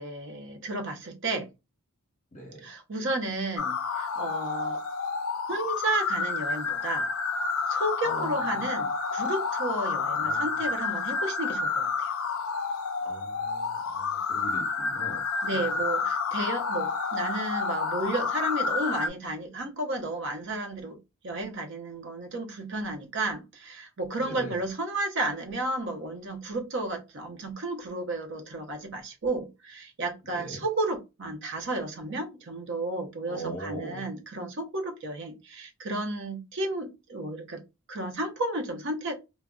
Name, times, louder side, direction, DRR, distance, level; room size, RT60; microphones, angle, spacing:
voice 1, 0.0-1.5 2.6-4.8 5.5-7.1 7.7-12.1 15.4-21.0 21.2-37.6 37.9-39.1, right 2 dB, 55° right, 0.7 m, -32 dB
voice 2, 2.3-2.7 8.1-8.3 10.0-10.5 13.0-15.2 15.5-15.6 24.2-24.6 30.3-30.6 33.3-34.0, right 1 dB, 35° left, 0.9 m, -40 dB
sound 1, 3.6-19.1, left 4 dB, 60° left, 0.3 m, -30 dB
2.2 x 2.1 x 3.6 m
head